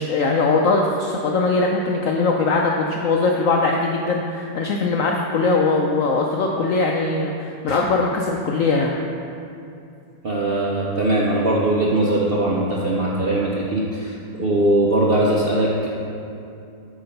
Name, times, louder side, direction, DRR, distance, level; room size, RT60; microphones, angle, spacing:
voice 1, 0.0-9.0, left 3 dB, 75° left, 0 dB, 0.7 m, -21 dB
voice 2, 10.2-15.9, right 1 dB, 60° right, -4 dB, 0.6 m, -20 dB
8.6 x 4.7 x 5.2 m, 2.6 s
omnidirectional pair, 1.9 m